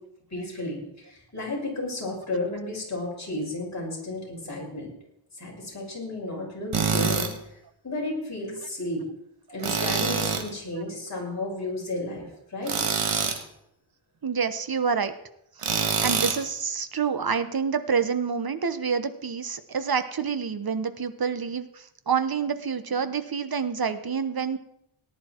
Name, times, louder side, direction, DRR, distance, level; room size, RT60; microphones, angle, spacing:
voice 1, 0.3-4.9 5.4-7.3 7.8-9.0 9.5-12.8, left 2 dB, 35° left, -3 dB, 6.1 m, -33 dB
Tools, 6.7-7.3 9.6-10.5 12.6-13.4 15.6-16.4, right 5 dB, 90° right, 1.7 m, -25 dB
voice 2, 14.2-15.1 15.6-15.7 16.0-24.6, right 6 dB, 45° right, 11 dB, 1.1 m, -27 dB
18.5 x 10.0 x 4.5 m, 0.80 s
wide cardioid pair, 105°, 49 cm